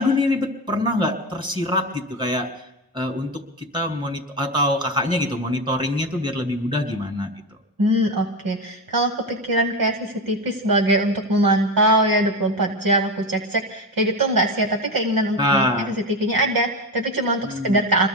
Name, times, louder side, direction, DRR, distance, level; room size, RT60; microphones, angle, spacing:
voice 1, 0.0-2.5 2.9-7.3 15.4-15.9 17.5-17.8, left 1 dB, 10° right, 3 dB, 2.6 m, -24 dB
voice 2, 7.8-18.1, right 1 dB, 50° right, 3 dB, 1.2 m, -21 dB
27.5 x 21.5 x 2.3 m, 0.82 s
cardioid pair, 55°, 44 cm